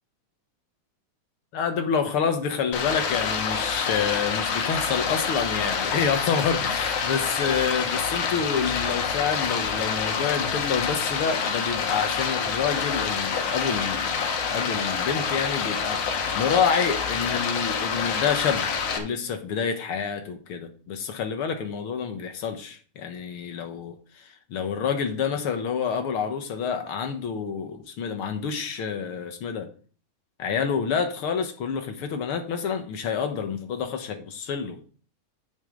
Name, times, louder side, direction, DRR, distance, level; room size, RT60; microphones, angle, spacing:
voice 1, 1.5-14.2 14.5-16.0 16.3-18.6 19.0-29.7 30.4-34.8, left 6 dB, 60° left, 6 dB, 1.7 m, -28 dB
Stream, 2.7-19.0, left 6 dB, 75° left, 2.7 m, -27 dB
9.7 x 8.8 x 3.8 m, 0.40 s
omnidirectional pair, 3.5 m